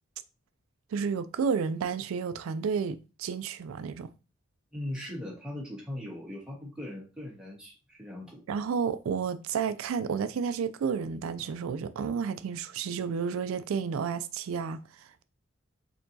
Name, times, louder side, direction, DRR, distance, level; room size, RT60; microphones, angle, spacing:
voice 1, 0.9-4.1 8.5-15.2, right 6 dB, 90° right, 0.3 m, -31 dB
voice 2, 4.7-8.4, left 1 dB, 5° right, 1.4 m, -39 dB
4.3 x 2.9 x 2.7 m
head